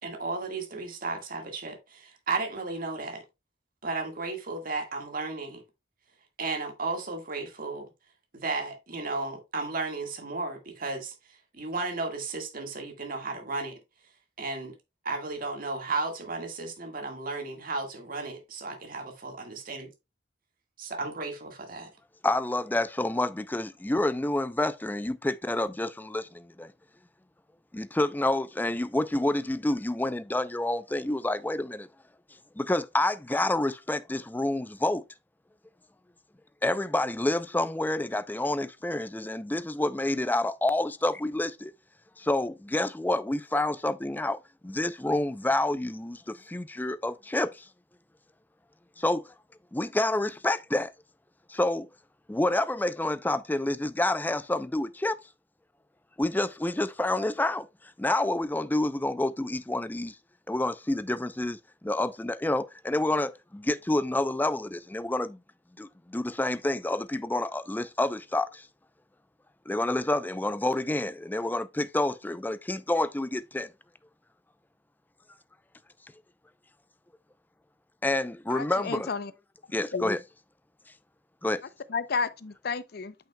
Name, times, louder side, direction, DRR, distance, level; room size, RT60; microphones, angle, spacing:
voice 1, 0.0-3.2 3.8-5.6 6.4-7.9 8.3-11.1 11.6-13.7 14.4-14.7 15.0-19.9 20.8-21.9, right 3 dB, 50° right, 1.7 m, -34 dB
voice 2, 22.2-26.7 27.7-31.9 32.6-35.0 36.6-41.7 42.2-47.7 49.0-49.3 49.7-50.9 51.5-51.9 52.3-55.2 56.2-57.7 58.0-60.1 60.5-65.4 65.8-68.7 69.7-73.7 78.0-79.1 79.7-80.2 81.4-81.6, left 1 dB, 10° left, 0.4 m, -28 dB
voice 3, 78.5-79.3 79.9-80.1 81.9-83.1, left 4 dB, 60° left, 0.6 m, -31 dB
8.7 x 5.7 x 2.2 m
head